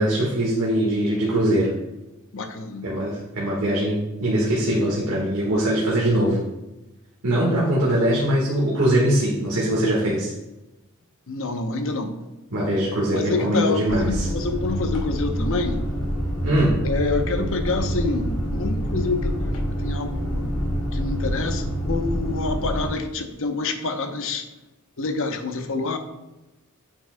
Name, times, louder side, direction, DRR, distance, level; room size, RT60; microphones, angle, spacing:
voice 1, 0.0-1.8 2.8-6.5 7.2-10.3 12.5-14.3 16.4-16.8, right 1 dB, 80° right, -6 dB, 1.6 m, -22 dB
voice 2, 2.3-2.9 11.3-12.2 13.1-15.8 16.8-19.5 19.8-20.5 20.9-24.4 25.0-26.0, left 3 dB, 65° left, 7 dB, 0.8 m, -27 dB
sound 1, 13.8-22.9, equal, 85° left, 1.4 m, -26 dB
8.5 x 6.3 x 2.2 m, 1.0 s
head